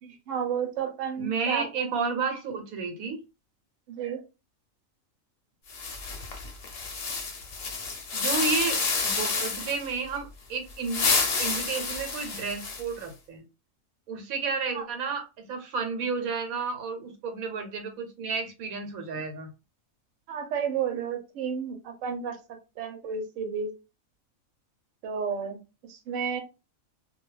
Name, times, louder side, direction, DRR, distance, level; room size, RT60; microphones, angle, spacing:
voice 1, 0.0-1.7 3.9-4.2 14.7-14.9 20.3-22.4 22.8-23.7 25.0-25.6 25.9-26.4, right 7 dB, 70° right, 4 dB, 1.0 m, -31 dB
voice 2, 1.2-3.2 8.1-11.1 11.4-13.4 14.1-19.5, right 5 dB, 90° right, 6 dB, 1.2 m, -31 dB
sound 1, 5.7-9.9 10.7-13.0, left 4 dB, 55° left, 0.8 m, -29 dB
2.3 x 2.2 x 3.1 m, 0.28 s
omnidirectional pair, 1.4 m